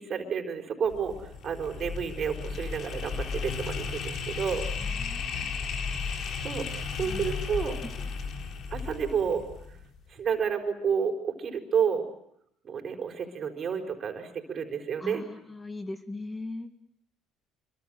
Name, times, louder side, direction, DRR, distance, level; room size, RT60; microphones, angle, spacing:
voice 1, 0.0-4.6 6.1-6.7 6.9-7.8 8.7-9.4 10.1-12.0 12.6-15.2, right 7 dB, 45° right, 5 dB, 4.6 m, -30 dB
sound 1, 0.9-10.0, left 5 dB, 55° left, 3.9 m, -34 dB
voice 2, 4.8-5.7 7.0-7.3 7.8-8.1 15.0-16.7, left 2 dB, 15° left, 8 dB, 2.1 m, -40 dB
26.5 x 23.5 x 7.8 m, 0.74 s
supercardioid pair, 75°, 0 cm